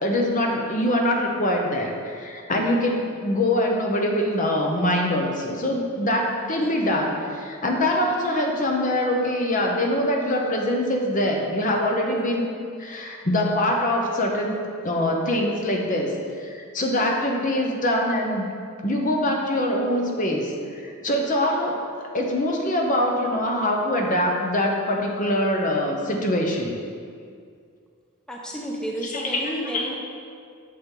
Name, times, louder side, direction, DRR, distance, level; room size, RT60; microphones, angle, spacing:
voice 1, 0.0-12.5 12.8-18.5 18.8-20.5 20.8-26.8 29.0-29.8, left 1 dB, 40° left, 0 dB, 0.9 m, -24 dB
voice 2, 28.3-29.9, equal, 5° left, -2 dB, 0.8 m, -31 dB
8.5 x 6.9 x 3.8 m, 2.2 s
head